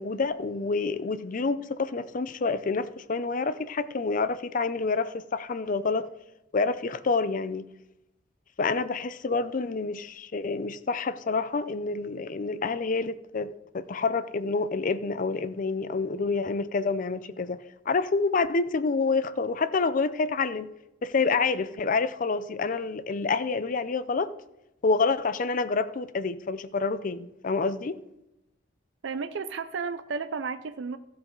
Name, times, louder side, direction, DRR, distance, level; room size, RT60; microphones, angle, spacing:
voice 1, 0.0-6.1 6.5-7.6 8.6-20.7 21.0-24.3 24.8-28.0, left 4 dB, 45° left, 0.5 m, -28 dB
voice 2, 29.0-31.0, right 5 dB, 70° right, 0.5 m, -33 dB
14.0 x 7.9 x 3.8 m
head